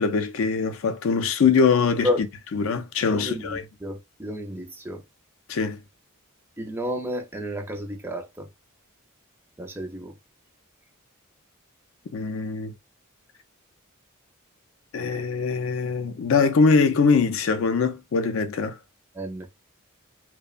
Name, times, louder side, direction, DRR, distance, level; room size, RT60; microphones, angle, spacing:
voice 1, 0.0-2.3 2.5-3.6 5.5-5.8 12.1-12.7 14.9-18.8, left 5 dB, 60° left, 0.4 m, -22 dB
voice 2, 3.1-5.0 6.6-8.5 9.6-10.1 19.2-19.5, left 1 dB, 10° right, 0.4 m, -31 dB
2.8 x 2.1 x 2.3 m
head